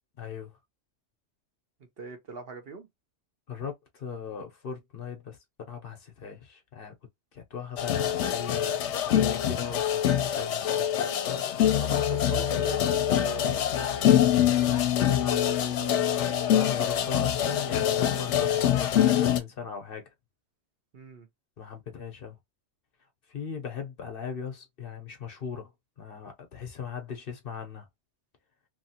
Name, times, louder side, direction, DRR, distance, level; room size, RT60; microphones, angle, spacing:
voice 1, 0.2-0.6 3.5-5.4 5.7-7.0 7.3-11.1 14.2-14.8 15.2-15.4 16.5-20.1 21.6-22.4 23.3-25.7 26.0-27.9, left 7 dB, 55° left, 0.9 m, -38 dB
voice 2, 2.0-2.9 11.7-13.5 15.0-16.0 20.9-21.3, right 5 dB, 60° right, 1.0 m, -41 dB
sound 1, 7.8-19.4, left 10 dB, 80° left, 0.9 m, -25 dB
3.0 x 2.5 x 2.8 m
omnidirectional pair, 1.2 m